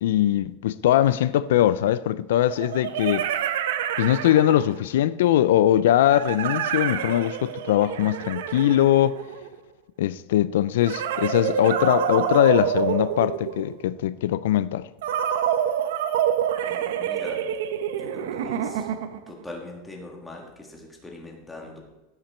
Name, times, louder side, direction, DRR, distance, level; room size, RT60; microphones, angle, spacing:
voice 1, 0.0-3.3 4.0-9.2 10.0-14.9, left 12 dB, 80° left, 0.3 m, -21 dB
sound 1, 1.0-1.1 2.5-4.9 6.1-9.6 10.8-13.8 15.0-19.3, right 9 dB, 80° right, 0.8 m, -27 dB
voice 2, 16.6-17.5 18.0-18.9 19.3-21.8, left 1 dB, 5° left, 1.5 m, -41 dB
15.5 x 5.8 x 4.4 m
supercardioid pair, 180°, 0 cm